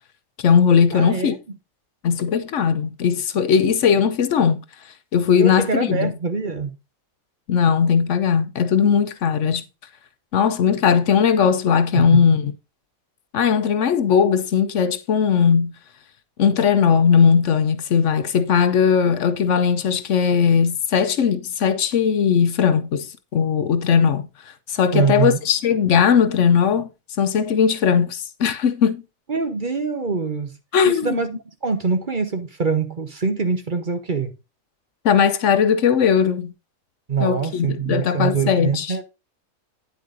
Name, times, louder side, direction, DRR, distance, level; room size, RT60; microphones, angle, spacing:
voice 1, 0.4-1.4 2.0-4.6 5.1-6.1 7.5-9.6 10.3-12.5 13.3-15.7 16.4-23.1 23.3-24.3 24.7-26.9 27.2-29.0 30.7-31.2 35.0-36.5 37.2-38.9, left 7 dB, 65° left, 1.0 m, -18 dB
voice 2, 0.9-1.4 5.4-6.8 11.9-12.3 24.9-25.4 29.3-30.6 30.8-34.4 37.1-39.0, right 5 dB, 40° right, 1.1 m, -24 dB
9.4 x 8.3 x 2.6 m
omnidirectional pair, 1.4 m